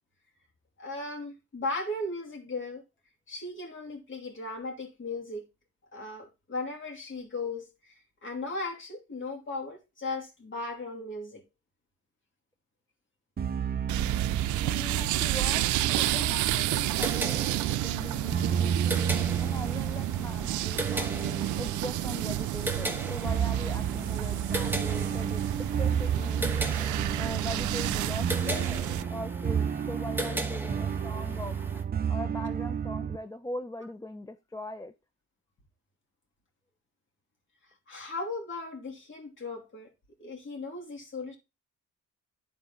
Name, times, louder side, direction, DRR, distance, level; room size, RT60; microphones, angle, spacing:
voice 1, 0.8-2.8 3.3-5.4 5.9-11.4 15.0-15.3 37.7-39.9 40.2-41.4, left 2 dB, 40° left, 2.7 m, -37 dB
sound 1, 13.4-33.2, right 7 dB, 30° right, 0.6 m, -32 dB
sound 2, 13.9-29.0, right 16 dB, 75° right, 0.5 m, -31 dB
voice 2, 14.6-19.0 19.4-21.1 21.6-25.4 25.8-26.6 27.1-28.8 29.1-31.6 32.1-34.9, left 1 dB, 10° left, 0.5 m, -40 dB
sound 3, 16.9-31.8, right 1 dB, 5° right, 1.1 m, -38 dB
11.0 x 4.1 x 3.8 m
cardioid pair, 90°, 30 cm